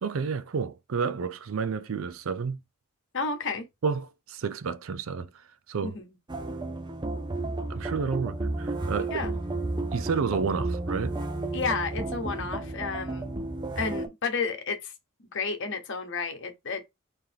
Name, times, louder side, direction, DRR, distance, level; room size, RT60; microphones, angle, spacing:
voice 1, 0.0-2.6 3.8-6.0 7.7-9.3 9.9-11.2, right 5 dB, 70° right, 0.5 m, -30 dB
voice 2, 3.1-3.6 5.8-6.1 9.1-9.3 11.5-13.4 13.8-14.9 15.3-16.8, left 4 dB, 60° left, 1.1 m, -31 dB
sound 1, 6.3-14.1, right 2 dB, 20° right, 0.6 m, -32 dB
3.8 x 3.3 x 2.8 m
head